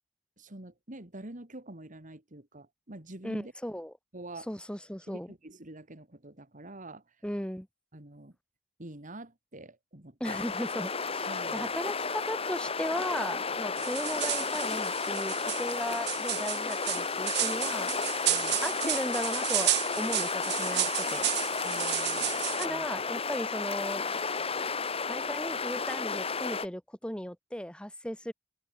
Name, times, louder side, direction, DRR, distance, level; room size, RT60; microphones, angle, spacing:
voice 1, 0.4-3.5 4.1-4.5 5.1-7.1 7.9-8.4 8.8-10.5 11.3-11.7 13.8-13.9 18.3-18.6 21.6-22.9, right 1 dB, 40° right, 2.7 m, -46 dB
voice 2, 3.2-3.9 4.5-5.3 7.2-7.7 10.2-17.9 18.6-21.3 22.6-24.0 25.0-28.3, equal, 5° left, 3.5 m, -36 dB
sound 1, 10.2-26.7, left 5 dB, 30° left, 1.7 m, -33 dB
sound 2, 13.8-22.7, right 15 dB, 60° right, 1.0 m, -32 dB
open air
head